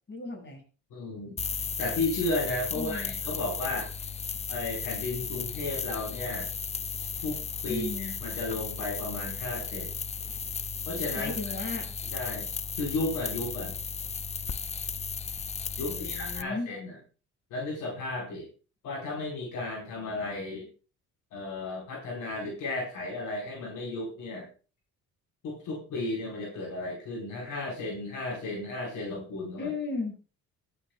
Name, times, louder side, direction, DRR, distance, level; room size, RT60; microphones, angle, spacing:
voice 1, 0.1-0.6 2.7-3.2 7.6-8.2 11.1-11.9 15.9-16.7 29.6-30.1, left 3 dB, 40° left, 0 dB, 6.6 m, -35 dB
voice 2, 0.9-1.4 1.8-3.9 4.5-6.5 7.2-9.9 10.9-11.3 12.1-12.5 12.8-13.7 15.8-17.0 17.5-18.5 18.8-20.7 21.3-24.5 25.4-29.7, left 2 dB, 85° left, -2 dB, 4.6 m, -34 dB
sound 1, 1.4-16.4, left 6 dB, 20° left, 0.5 m, -35 dB
23.0 x 8.6 x 2.3 m, 0.35 s
cardioid pair, 90°, 30 cm